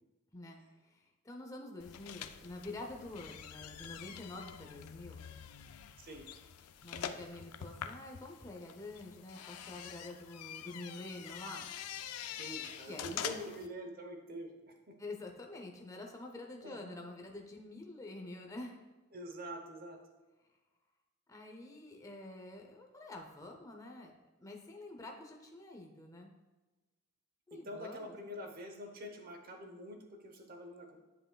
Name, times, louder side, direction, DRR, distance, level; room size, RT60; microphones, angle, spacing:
voice 1, 0.8-5.2 6.8-11.7 12.9-13.4 15.0-18.8 21.3-24.1 24.4-26.3 27.5-28.2, left 2 dB, 15° left, 1 dB, 0.6 m, -47 dB
sound 1, 1.8-13.7, left 9 dB, 85° left, 0.4 m, -46 dB
voice 2, 12.4-14.9 16.6-17.0 19.1-20.0 27.5-31.0, equal, 40° right, 4 dB, 0.9 m, -46 dB
10.0 x 5.5 x 2.3 m, 1.2 s
head